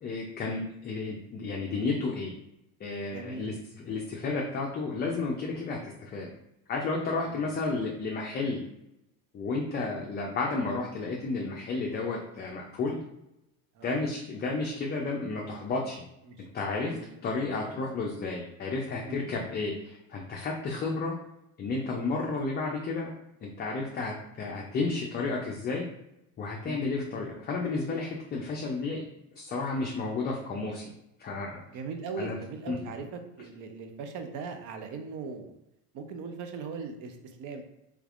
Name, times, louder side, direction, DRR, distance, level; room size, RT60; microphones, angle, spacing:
voice 1, 0.0-2.3 2.8-3.5 3.8-6.3 6.7-8.6 9.3-13.0 13.8-16.0 16.5-17.0 17.2-21.1 21.6-23.1 23.4-25.9 26.4-29.0 29.4-30.8 31.2-31.6 32.2-32.4 32.7-32.8, left 3 dB, 25° left, -1 dB, 0.4 m, -32 dB
voice 2, 3.1-3.5 7.2-7.5 13.7-14.0 16.3-16.5 16.8-17.7 19.1-19.3 26.6-26.8 31.7-35.5 35.9-37.6, right 4 dB, 50° right, 6 dB, 0.6 m, -40 dB
3.2 x 3.2 x 2.4 m, 0.85 s
supercardioid pair, 105°, 41 cm